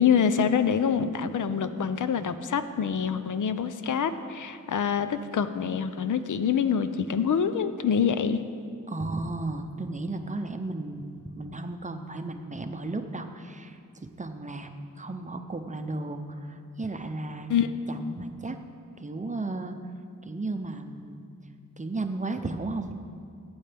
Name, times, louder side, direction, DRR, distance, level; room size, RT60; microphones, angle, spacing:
voice 1, 0.0-8.4 17.5-17.7, left 7 dB, 70° left, 11 dB, 0.6 m, -25 dB
voice 2, 8.9-14.7 15.0-17.5 17.9-18.6 19.0-19.8 20.2-21.3 21.8-22.9, right 2 dB, 25° right, 6 dB, 0.6 m, -34 dB
16.5 x 8.8 x 3.4 m, 2.3 s
wide cardioid pair, 110°, 31 cm